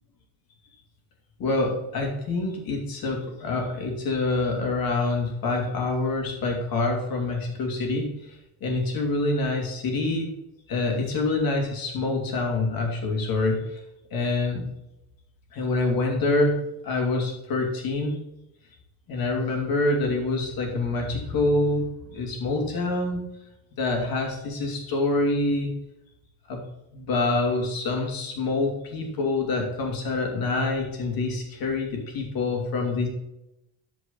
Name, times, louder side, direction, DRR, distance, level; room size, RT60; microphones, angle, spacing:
voice 1, 1.4-10.3 10.7-13.8 14.1-14.7 15.5-16.6 16.8-18.2 19.1-23.2 23.8-25.7 26.5-26.6 26.9-33.1, left 2 dB, 50° left, 1 dB, 2.8 m, -26 dB
12.5 x 5.2 x 3.9 m, 0.88 s
cardioid pair, 130°, 45 cm